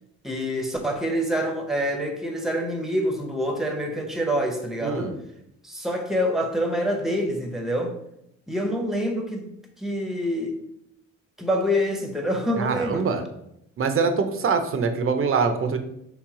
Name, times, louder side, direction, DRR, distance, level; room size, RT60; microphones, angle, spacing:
voice 1, 0.2-5.1 5.6-7.9 8.5-9.5 9.8-10.6 11.4-13.1, equal, ahead, 3 dB, 0.8 m, -26 dB
voice 2, 4.8-5.2 12.6-13.2 13.8-15.8, right 5 dB, 45° right, 7 dB, 0.6 m, -24 dB
3.4 x 3.1 x 4.7 m, 0.79 s
cardioid pair, 90°, 30 cm